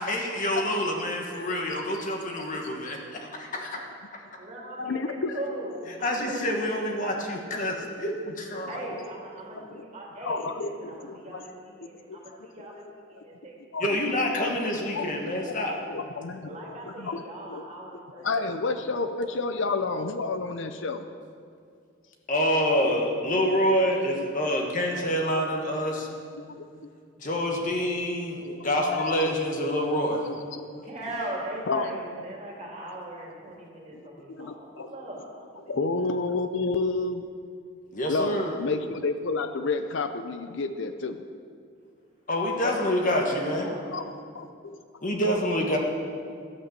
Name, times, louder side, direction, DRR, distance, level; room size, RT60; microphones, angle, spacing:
voice 1, 0.0-3.8 4.1-4.2 6.0-8.8 13.8-15.8 22.3-26.1 27.2-30.3 37.9-38.6 42.3-43.7 45.0-45.8, equal, 40° left, 1 dB, 1.4 m, -27 dB
voice 2, 2.4-2.8 4.8-5.4 7.2-7.3 7.5-7.9 9.5-9.8 10.2-10.9 11.3-11.4 12.1-12.2 12.6-12.7 13.7-13.9 14.9-15.1 15.9-16.5 17.0-17.2 17.5-17.6 18.2-21.1 23.4-23.9 26.1-26.2 26.5-26.9 28.4-29.4 30.3-30.8 31.7-31.9 34.3-34.9 35.7-37.3 38.1-41.2 43.9-44.0 44.3-44.5, left 3 dB, 60° left, 8 dB, 0.6 m, -30 dB
voice 3, 4.4-6.7 7.0-7.7 8.7-14.0 16.4-19.0 19.2-19.5 30.8-35.3 36.0-36.2 42.8-43.9, right 1 dB, 30° right, -3 dB, 2.8 m, -40 dB
13.0 x 8.8 x 6.8 m, 2.3 s
head